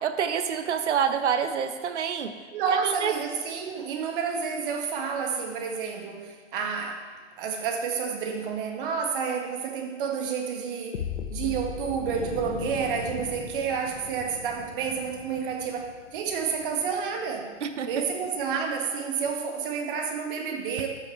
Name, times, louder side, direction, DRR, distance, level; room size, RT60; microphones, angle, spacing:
voice 1, 0.0-2.3 2.7-3.1 17.6-17.9, right 7 dB, 65° right, 9 dB, 1.0 m, -27 dB
voice 2, 2.5-7.1 7.4-17.5 17.9-20.9, right 6 dB, 45° right, 3 dB, 1.7 m, -30 dB
sound 1, 10.9-14.9, left 8 dB, 65° left, 0.9 m, -38 dB
sound 2, 12.0-18.6, left 5 dB, 45° left, 1.7 m, -42 dB
13.0 x 5.7 x 4.7 m, 1.4 s
hypercardioid pair, 125°, 38 cm